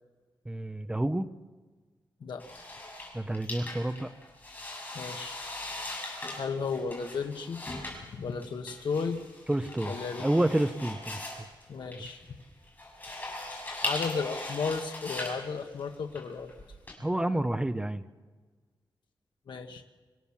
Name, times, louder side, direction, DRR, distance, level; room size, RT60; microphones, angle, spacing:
voice 1, 0.5-1.3 3.1-4.1 9.5-9.9 10.2-11.2 17.0-18.0, right 1 dB, 10° right, 11 dB, 0.7 m, -29 dB
sound 1, 2.4-16.9, left 2 dB, 25° left, 7.3 m, -39 dB
voice 2, 4.9-5.4 6.4-7.6 8.1-9.2 9.8-10.3 11.7-12.2 13.8-16.5 19.5-19.8, left 5 dB, 75° left, 4 dB, 1.4 m, -34 dB
26.5 x 17.0 x 7.2 m, 1.4 s
wide cardioid pair, 130°, 8 cm